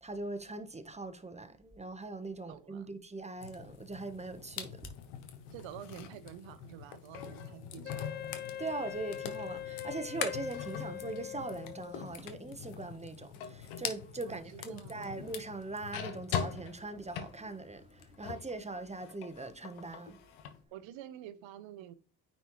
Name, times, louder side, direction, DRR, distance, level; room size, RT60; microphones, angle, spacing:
voice 1, 0.0-4.9 8.6-20.2, right 2 dB, 15° right, 1.0 m, -41 dB
voice 2, 2.5-3.0 5.5-8.1 14.2-15.1 20.7-21.9, right 11 dB, 65° right, 0.9 m, -48 dB
sound 1, 3.4-18.5 18.9-20.6, left 8 dB, 75° left, 1.1 m, -43 dB
Wind instrument woodwind instrument, 7.8-12.1, left 11 dB, 25° left, 0.3 m, -42 dB
9.2 x 4.3 x 3.1 m
hypercardioid pair, 55°, 49 cm